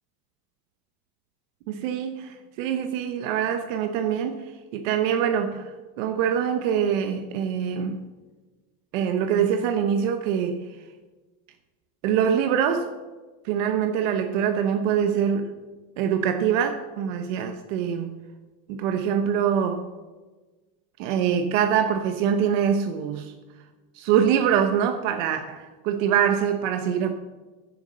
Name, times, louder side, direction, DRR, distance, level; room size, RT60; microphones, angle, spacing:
voice 1, 1.7-4.4 4.7-8.0 8.9-10.7 12.0-12.9 13.4-15.5 16.0-18.1 18.7-19.9 21.0-23.3 23.9-27.1, right 8 dB, 70° right, 6 dB, 1.1 m, -24 dB
10.5 x 7.3 x 7.5 m, 1.2 s
cardioid pair, 170°, 40 cm